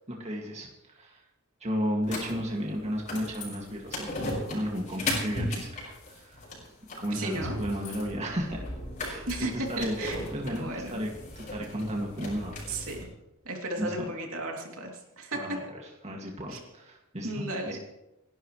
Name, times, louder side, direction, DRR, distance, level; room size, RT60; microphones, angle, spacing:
voice 1, 0.1-0.7 0.9-1.2 1.6-6.4 7.0-8.6 9.0-10.0 10.3-11.1 11.4-12.6 13.8-14.1 15.3-17.8, equal, 30° right, -1 dB, 2.3 m, -34 dB
sound 1, 2.0-13.0, left 1 dB, 35° left, 6.0 m, -37 dB
voice 2, 7.1-7.6 9.3-11.0 12.7-13.1 13.4-15.4 16.5-16.6 17.2-17.8, right 2 dB, 70° right, 0 dB, 3.0 m, -34 dB
29.5 x 11.5 x 3.3 m, 0.96 s
head